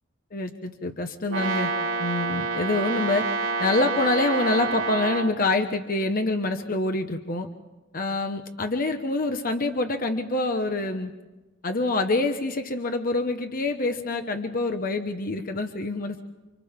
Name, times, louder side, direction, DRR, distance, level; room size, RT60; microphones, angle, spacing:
voice 1, 0.3-1.7 2.0-3.3 3.6-7.5 7.9-11.1 11.6-16.2, left 2 dB, 45° left, 6 dB, 1.1 m, -26 dB
Brass instrument, 1.3-5.4, right 4 dB, 75° right, 2.4 m, -28 dB
29.5 x 25.5 x 3.7 m, 1.1 s
head